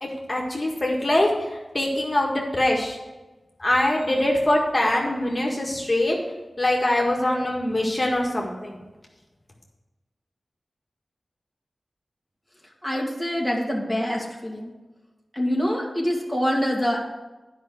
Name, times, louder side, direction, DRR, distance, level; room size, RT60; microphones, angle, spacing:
voice 1, 0.0-3.0 3.6-6.2 6.6-8.8, left 1 dB, 30° left, -1 dB, 1.8 m, -23 dB
voice 2, 12.8-14.7 15.3-17.1, equal, 5° right, -1 dB, 2.1 m, -25 dB
10.0 x 5.6 x 6.4 m, 1.1 s
wide cardioid pair, 60°, 0 cm